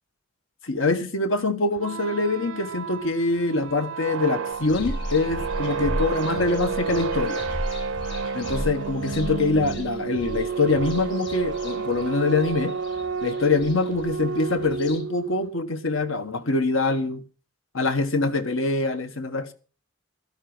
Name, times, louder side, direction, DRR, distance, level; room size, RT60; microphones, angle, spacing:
voice 1, 0.6-7.4 8.3-12.7 13.2-17.2 17.7-19.5, left 3 dB, 80° left, 1.5 m, -24 dB
sound 1, 1.7-15.5, right 5 dB, 85° right, 0.6 m, -31 dB
sound 2, 4.5-15.0, equal, 60° left, 5.5 m, -35 dB
12.5 x 12.0 x 6.1 m
head